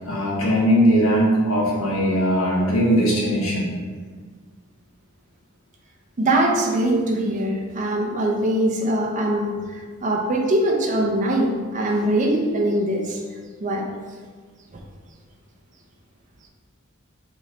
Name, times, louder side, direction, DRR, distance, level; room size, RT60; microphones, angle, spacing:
voice 1, 0.1-3.7, equal, 70° left, -4 dB, 1.0 m, -19 dB
voice 2, 6.2-9.6 10.0-13.2 13.6-13.9, right 1 dB, 35° right, 1 dB, 0.4 m, -22 dB
3.1 x 3.0 x 3.8 m, 1.6 s
head